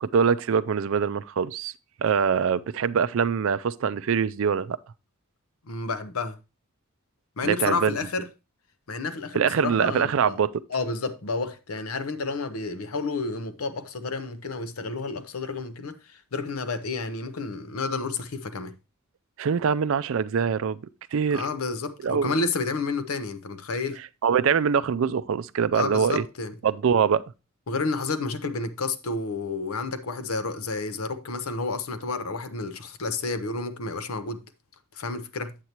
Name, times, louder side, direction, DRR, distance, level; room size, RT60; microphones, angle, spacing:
voice 1, 0.0-1.7 2.0-4.8 7.4-7.9 9.3-10.6 19.4-20.8 21.1-21.5 22.0-22.3 24.2-26.2 26.6-27.2, right 6 dB, 65° right, 0.4 m, -23 dB
voice 2, 5.7-6.4 7.4-8.3 8.9-10.4 10.7-18.7 21.3-24.0 25.7-26.5 27.7-34.4 34.9-35.6, left 3 dB, 90° left, 0.8 m, -30 dB
8.2 x 7.9 x 2.9 m
head